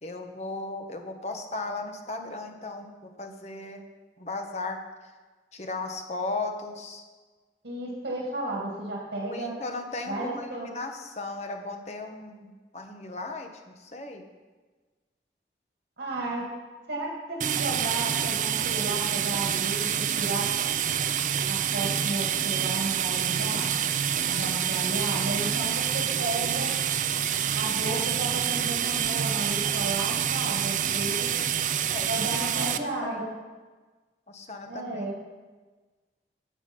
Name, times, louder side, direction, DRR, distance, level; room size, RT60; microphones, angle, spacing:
voice 1, 0.0-3.8 4.2-4.8 5.5-7.0 9.2-14.3 31.9-32.1 32.5-32.7 33.0-33.2 34.3-35.1, left 2 dB, 40° left, 4 dB, 1.2 m, -36 dB
voice 2, 7.6-9.5 10.1-10.7 16.0-16.5 16.9-20.5 21.5-23.7 24.2-26.7 27.5-31.3 32.1-33.3 34.7-35.2, right 2 dB, 85° right, -2 dB, 2.3 m, -33 dB
sound 1, 17.4-32.8, right 9 dB, 45° right, 0.5 m, -27 dB
16.0 x 6.2 x 5.4 m, 1.3 s
head